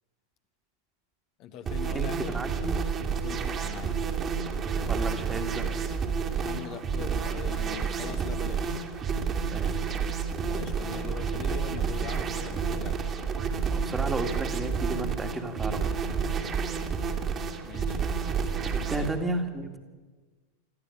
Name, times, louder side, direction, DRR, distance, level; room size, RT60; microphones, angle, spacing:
voice 1, 1.4-2.4 3.2-4.0 6.3-8.8 10.4-13.1 17.6-18.0 18.9-19.2, left 8 dB, 40° left, 6 dB, 1.6 m, -42 dB
sound 1, 1.7-19.1, right 6 dB, 25° right, 2.5 m, -30 dB
voice 2, 1.9-2.8 4.9-5.7 9.5-9.9 13.7-15.9 18.7-19.8, right 2 dB, 10° right, 6 dB, 2.3 m, -33 dB
21.0 x 14.0 x 9.7 m, 1.4 s
figure-of-eight pair, 90°, 0 cm